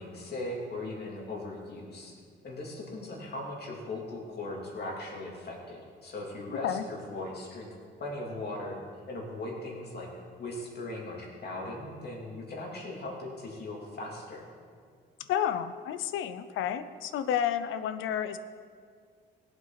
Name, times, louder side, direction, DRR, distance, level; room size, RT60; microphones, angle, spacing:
voice 1, 0.0-2.1 2.4-7.7 8.0-8.8 9.1-14.4, left 2 dB, 55° left, -2 dB, 3.1 m, -39 dB
voice 2, 15.3-18.4, left 9 dB, 85° left, 11 dB, 0.6 m, -30 dB
17.0 x 8.0 x 4.1 m, 2.1 s
cardioid pair, 90°, 20 cm